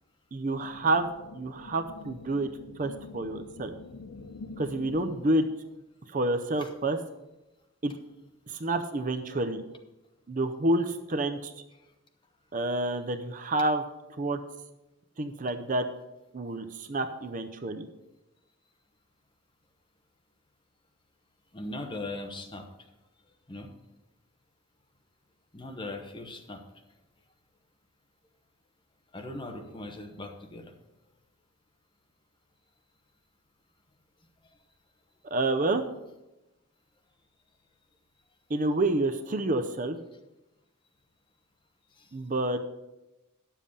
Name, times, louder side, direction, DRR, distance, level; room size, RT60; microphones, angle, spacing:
voice 1, 0.3-2.5 2.8-3.8 4.6-5.5 6.1-7.0 7.8-7.9 8.5-9.6 10.3-11.5 12.5-13.8 14.2-14.4 15.2-15.8 16.3-17.9 35.2-35.8 38.5-40.0 42.1-42.6, right 2 dB, 40° right, 8 dB, 0.6 m, -28 dB
sound 1, 0.5-5.5, left 3 dB, 80° left, 0.5 m, -46 dB
voice 2, 21.5-22.7 23.5-23.7 25.5-26.6 29.1-30.7 42.0-42.1, left 2 dB, 20° left, 3 dB, 1.0 m, -39 dB
10.0 x 7.3 x 5.4 m, 0.98 s
head